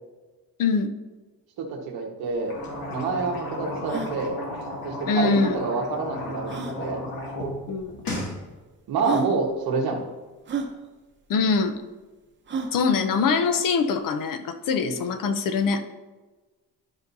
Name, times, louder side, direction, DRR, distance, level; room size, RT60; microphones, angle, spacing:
voice 1, 0.6-0.9 5.1-5.6 7.7-8.0 11.3-11.7 12.7-15.8, left 5 dB, 60° left, 9 dB, 0.7 m, -23 dB
voice 2, 1.6-2.6 2.9-4.4 4.8-6.5 6.8-7.0 8.9-10.0 14.8-15.0, right 4 dB, 85° right, 1 dB, 1.4 m, -27 dB
sound 1, 2.3-2.4 2.6-2.7 3.2-3.3 3.8-4.1 5.5-5.6 6.5-6.8 7.8-7.9 8.6-8.7 9.0-9.3 10.5-10.7 12.5-12.8, right 5 dB, 30° right, 0.8 m, -31 dB
sound 2, 2.4-7.5 7.8-8.3, left 1 dB, 80° left, 2.2 m, -34 dB
11.5 x 5.3 x 2.7 m, 1.3 s
cardioid pair, 170°, 36 cm